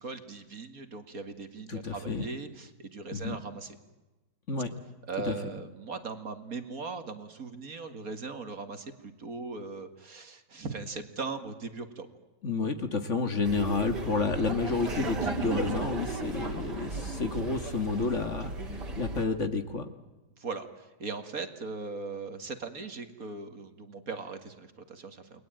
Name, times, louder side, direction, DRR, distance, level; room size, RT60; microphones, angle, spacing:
voice 1, 0.0-3.8 5.1-12.1 20.4-25.4, right 4 dB, 55° right, 8 dB, 2.6 m, -39 dB
voice 2, 1.7-2.3 3.1-3.4 4.5-4.7 5.2-5.4 12.4-18.5 19.0-19.9, left 4 dB, 45° left, 9 dB, 2.1 m, -30 dB
Laughter, 13.4-19.2, right 3 dB, 80° right, 3.8 m, -35 dB
30.0 x 21.0 x 9.2 m, 1.1 s
omnidirectional pair, 1.8 m